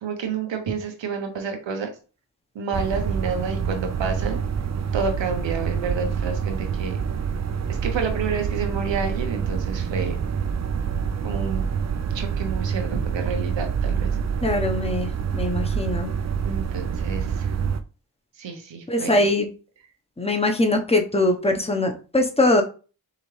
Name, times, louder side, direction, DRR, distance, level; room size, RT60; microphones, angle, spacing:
voice 1, 0.0-1.9 2.5-4.4 4.9-7.0 7.7-10.2 11.2-11.7 12.1-14.1 16.4-17.5 18.4-19.3, right 5 dB, 90° right, 4 dB, 0.9 m, -29 dB
sound 1, 2.7-17.8, right 7 dB, 40° right, 0.4 m, -26 dB
voice 2, 14.4-15.1 15.3-16.1 18.9-19.5 20.2-22.6, left 2 dB, 15° left, 3 dB, 1.0 m, -22 dB
5.0 x 2.8 x 3.2 m, 0.36 s
cardioid pair, 50°, 43 cm